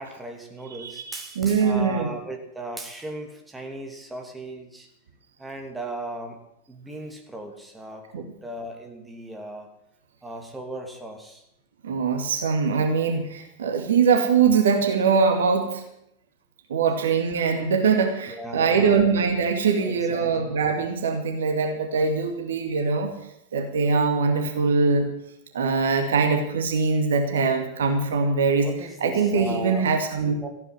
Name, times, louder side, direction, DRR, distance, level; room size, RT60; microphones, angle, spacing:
voice 1, 0.0-4.9 5.4-6.4 6.7-9.7 10.2-11.4 16.9-17.0 18.3-19.1 19.8-20.5 28.6-29.9 30.4-30.5, right 1 dB, 5° right, 2 dB, 2.9 m, -37 dB
voice 2, 0.8-2.1 8.1-8.2 11.8-15.8 16.7-23.1 23.5-25.1 25.5-28.7 29.0-30.4, right 5 dB, 65° right, 5 dB, 2.4 m, -22 dB
15.0 x 9.6 x 9.8 m, 0.80 s
figure-of-eight pair, 90°, 0 cm